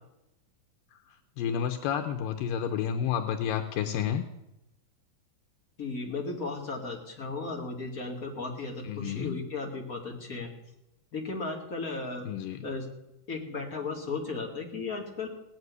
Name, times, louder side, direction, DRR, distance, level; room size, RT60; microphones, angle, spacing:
voice 1, 1.4-4.2 8.8-9.4 12.3-12.6, left 8 dB, 85° left, 6 dB, 2.6 m, -30 dB
voice 2, 5.8-10.5 11.1-12.3 12.6-12.9 13.3-15.3, left 3 dB, 30° left, 1 dB, 2.0 m, -35 dB
17.5 x 7.7 x 9.6 m, 0.89 s
omnidirectional pair, 3.9 m